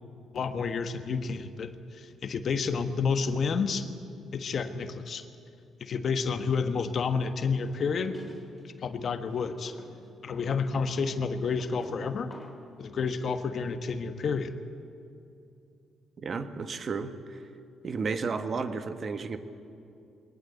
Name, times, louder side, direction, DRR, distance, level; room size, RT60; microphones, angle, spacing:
voice 1, 0.3-3.9 4.3-5.3 5.8-8.2 8.6-9.8 10.2-12.3 12.8-14.5, left 5 dB, 55° left, 9 dB, 1.4 m, -30 dB
sound 1, 7.6-8.7 9.3-12.8, left 2 dB, 30° left, 3.2 m, -51 dB
voice 2, 16.2-17.4 17.8-19.4, right 4 dB, 45° right, 9 dB, 1.5 m, -33 dB
22.0 x 19.5 x 8.2 m, 2.6 s
cardioid pair, 90°, 0 cm